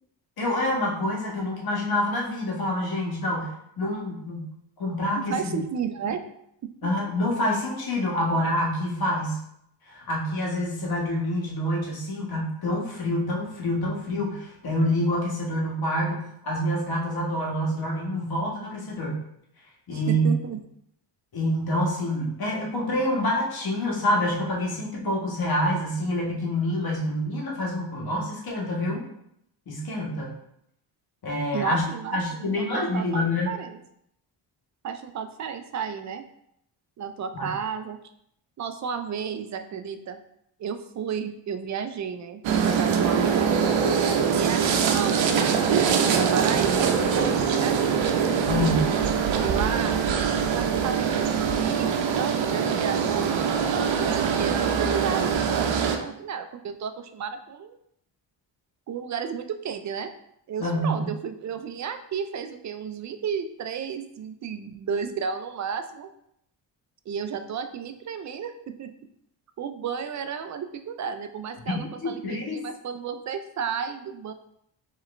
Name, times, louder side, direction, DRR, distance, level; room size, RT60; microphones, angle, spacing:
voice 1, 0.4-3.5 3.8-4.5 4.8-5.6 6.8-9.4 9.9-19.2 19.9-20.3 21.3-29.0 29.7-30.3 31.2-31.8 32.1-33.5 37.3-37.5 48.5-48.9 60.6-61.1 71.7-72.6, left 1 dB, 50° left, -2 dB, 1.5 m, -27 dB
voice 2, 5.3-6.3 6.6-6.7 19.9-20.6 31.5-33.8 34.8-36.2 37.0-38.0 38.6-40.2 40.6-43.7 44.4-48.0 49.4-50.1 50.5-57.8 58.9-60.1 60.5-66.1 67.1-68.9 69.6-74.3, right 7 dB, 40° right, 8 dB, 0.4 m, -33 dB
sound 1, 42.4-56.0, right 6 dB, 85° right, 0.7 m, -23 dB
4.8 x 3.0 x 3.2 m, 0.74 s
cardioid pair, 130°, 45 cm